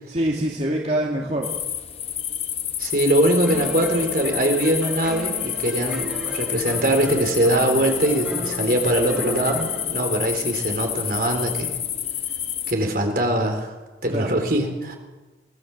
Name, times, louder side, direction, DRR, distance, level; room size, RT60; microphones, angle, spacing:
voice 1, 0.1-1.5 14.1-14.4, right 1 dB, 40° right, -1 dB, 2.2 m, -25 dB
sound 1, 1.4-12.7, left 10 dB, 35° left, 1.0 m, -29 dB
voice 2, 2.8-11.8 12.7-13.7 14.0-15.0, right 1 dB, 55° right, 4 dB, 4.1 m, -22 dB
sound 2, 3.4-9.9, equal, 5° right, 6.3 m, -35 dB
24.0 x 18.0 x 7.4 m, 1.2 s
head